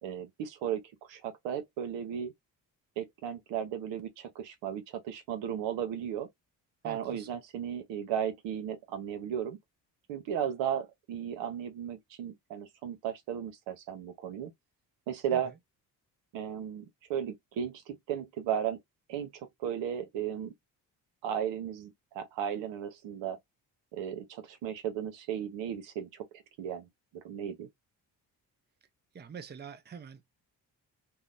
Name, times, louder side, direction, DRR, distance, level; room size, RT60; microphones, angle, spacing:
voice 1, 0.0-0.8 1.1-2.3 3.0-6.3 6.8-9.6 10.1-14.5 15.1-15.5 16.3-16.8 17.1-18.8 19.1-20.5 21.2-23.4 23.9-26.2 26.6-26.9 27.2-27.7, right 9 dB, 80° right, 0.7 m, -35 dB
voice 2, 6.8-7.3 15.3-15.4 29.1-30.2, right 6 dB, 25° right, 0.6 m, -45 dB
2.7 x 2.0 x 2.4 m
supercardioid pair, 55°, 44 cm